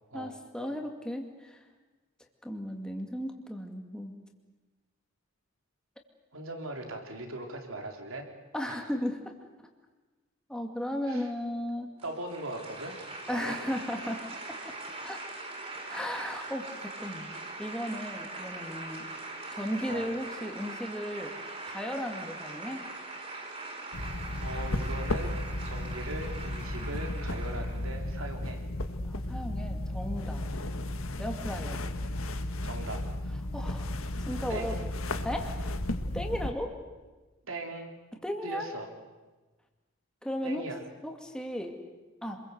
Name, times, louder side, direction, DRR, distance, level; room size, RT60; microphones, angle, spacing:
voice 1, 0.1-1.6 2.4-4.2 8.5-9.3 10.5-11.9 13.3-14.2 15.0-15.2 15.9-17.3 17.6-19.1 19.5-21.4 21.7-22.8 29.1-30.4 31.2-31.8 33.5-33.9 34.2-34.7 35.2-35.5 36.1-36.7 38.2-38.7 40.2-40.6 41.0-41.8 42.2-42.4, equal, 5° left, 2 dB, 2.3 m, -35 dB
voice 2, 6.3-8.3 8.7-8.9 11.1-11.3 12.0-13.0 13.3-13.6 19.9-20.1 24.4-28.6 32.6-33.0 34.5-34.9 37.5-37.9 38.4-38.9 40.4-40.8, right 2 dB, 80° right, 3 dB, 3.6 m, -39 dB
sound 1, 12.0-28.0, right 2 dB, 30° right, 4.8 m, -42 dB
sound 2, 23.9-36.5, left 1 dB, 85° left, 1.6 m, -34 dB
27.0 x 22.0 x 8.1 m, 1.2 s
head